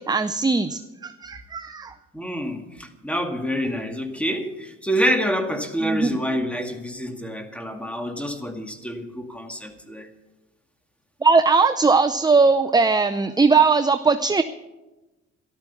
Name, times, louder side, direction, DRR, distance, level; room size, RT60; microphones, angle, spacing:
voice 1, 0.0-1.9 5.8-6.1 11.2-14.4, right 4 dB, 15° right, 9 dB, 0.6 m, -19 dB
voice 2, 2.1-10.1, equal, 5° left, 5 dB, 2.1 m, -27 dB
13.5 x 12.0 x 7.1 m, 1.1 s
cardioid pair, 90°, 30 cm